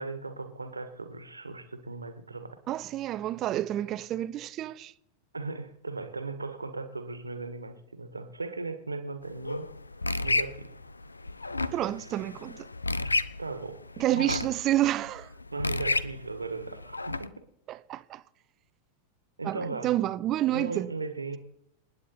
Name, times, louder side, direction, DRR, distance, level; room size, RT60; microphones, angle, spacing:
voice 1, 0.0-2.6 5.3-9.7 10.2-10.7 13.4-13.8 14.1-14.4 15.5-17.5 19.4-19.9 20.5-21.4, right 3 dB, 80° right, 1.7 m, -37 dB
voice 2, 2.7-4.9 11.7-12.7 14.0-15.3 17.7-18.2 19.4-20.9, right 14 dB, 35° right, 0.7 m, -29 dB
sound 1, 9.2-17.3, left 2 dB, 80° left, 0.6 m, -33 dB
28.0 x 9.7 x 4.3 m
figure-of-eight pair, 90°, 0 cm